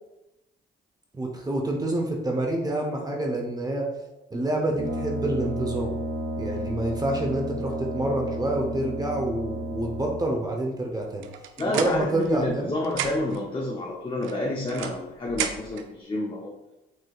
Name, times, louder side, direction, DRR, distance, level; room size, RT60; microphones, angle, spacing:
voice 1, 1.1-3.9 4.3-6.0 6.4-11.3 11.7-12.7, right 1 dB, 20° right, 0 dB, 0.7 m, -27 dB
Brass instrument, 4.7-10.4, equal, 60° right, 0.9 m, -32 dB
sound 1, 11.2-12.6 12.8-13.5 14.2-15.9, right 8 dB, 85° right, 0.4 m, -33 dB
voice 2, 11.6-16.5, left 2 dB, 25° left, -2 dB, 0.7 m, -29 dB
6.4 x 2.8 x 2.3 m, 0.97 s
cardioid pair, 90°, 20 cm